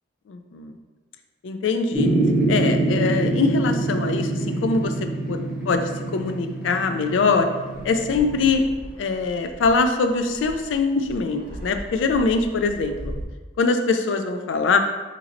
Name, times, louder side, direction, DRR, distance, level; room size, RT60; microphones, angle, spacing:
voice 1, 0.3-0.7 1.4-2.1 2.5-4.9 5.3-7.5 7.8-8.6 9.0-13.1 13.6-14.8, left 4 dB, 75° left, 7 dB, 0.3 m, -23 dB
sound 1, 1.9-8.4, right 2 dB, 5° right, 0.9 m, -25 dB
Fixed-wing aircraft airplane, 7.7-13.2, right 1 dB, 55° right, 0.7 m, -39 dB
4.0 x 3.0 x 2.5 m, 1.2 s
head